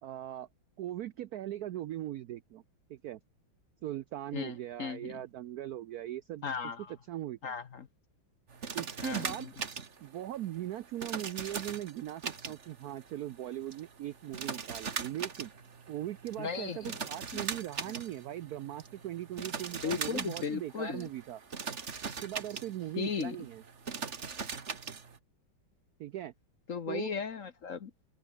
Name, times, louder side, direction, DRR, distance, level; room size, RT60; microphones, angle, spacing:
voice 1, 0.0-0.5 0.8-2.6 2.9-3.2 3.8-6.5 7.1-7.5 8.7-9.5 10.0-15.5 15.9-21.4 22.0-23.6 26.0-26.3 26.9-27.1, right 13 dB, 80° right, 0.8 m, -39 dB
voice 2, 4.3-5.2 6.4-6.9 7.4-7.9 9.0-9.5 16.4-16.9 19.8-21.1 23.0-23.5 26.7-27.9, left 6 dB, 45° left, 1.2 m, -36 dB
sound 1, 8.5-25.2, right 5 dB, 35° right, 1.7 m, -41 dB
open air
omnidirectional pair, 2.3 m